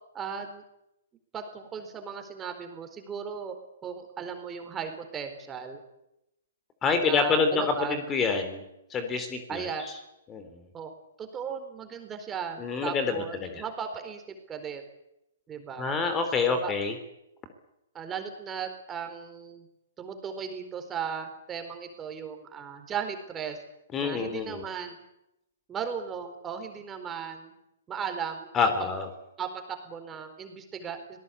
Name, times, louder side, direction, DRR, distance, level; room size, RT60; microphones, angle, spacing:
voice 1, 0.1-0.6 1.3-5.8 7.0-8.0 9.5-9.8 10.7-10.9 11.2-14.8 15.5-15.9 16.5-16.7 17.9-19.7 20.0-23.6 24.0-25.0 25.7-27.5 27.9-28.5 28.8-28.9 29.4-31.2, right 7 dB, 20° right, 6 dB, 4.3 m, -36 dB
voice 2, 6.8-8.6 8.9-9.9 10.3-10.7 12.6-13.2 13.4-13.6 15.8-16.9 23.9-24.6 28.5-29.1, left 4 dB, 20° left, 8 dB, 3.6 m, -27 dB
25.0 x 18.5 x 8.5 m, 0.86 s
figure-of-eight pair, 120°, 0 cm